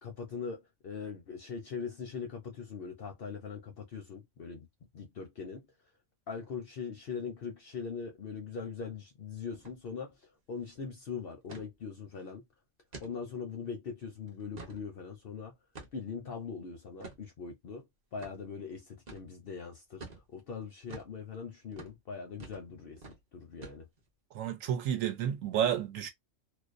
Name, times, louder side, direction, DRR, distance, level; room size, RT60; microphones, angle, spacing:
voice 1, 0.0-4.7 4.9-5.6 6.3-10.1 10.5-12.4 13.0-15.5 15.9-17.8 18.1-20.0 20.3-23.0 23.3-23.9, left 5 dB, 60° left, 0.6 m, -41 dB
sound 1, 9.5-9.8 10.1-10.2 10.5-10.8 11.5-11.7 12.2-12.3 12.9-13.1 13.6-13.7 14.3-14.8 15.8-16.1 17.0-17.2 18.2-18.4 19.1-19.3 20.0-20.2 20.9-21.1 21.7-22.0 22.4-22.7 23.0-23.2 23.6-24.1, right 3 dB, 40° right, 0.7 m, -47 dB
voice 2, 24.3-26.1, right 9 dB, 75° right, 1.0 m, -31 dB
2.5 x 2.0 x 2.4 m
omnidirectional pair, 1.4 m